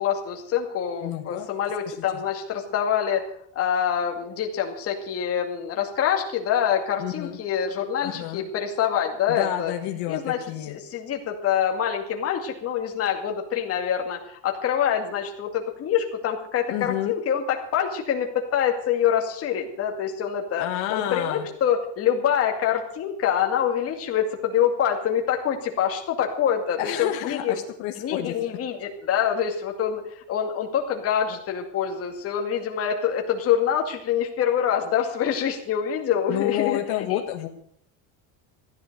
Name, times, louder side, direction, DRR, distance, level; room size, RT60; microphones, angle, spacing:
voice 1, 0.0-9.7 10.1-10.4 10.7-27.6 28.0-36.8 37.1-37.5, left 8 dB, 35° left, 2 dB, 2.3 m, -25 dB
voice 2, 1.0-1.5 1.8-2.2 7.0-7.4 8.0-8.4 9.3-10.8 16.7-17.1 20.6-21.5 26.8-28.3 36.3-37.5, left 13 dB, 75° left, 4 dB, 1.8 m, -29 dB
15.0 x 11.0 x 6.8 m, 0.64 s
cardioid pair, 160°, 42 cm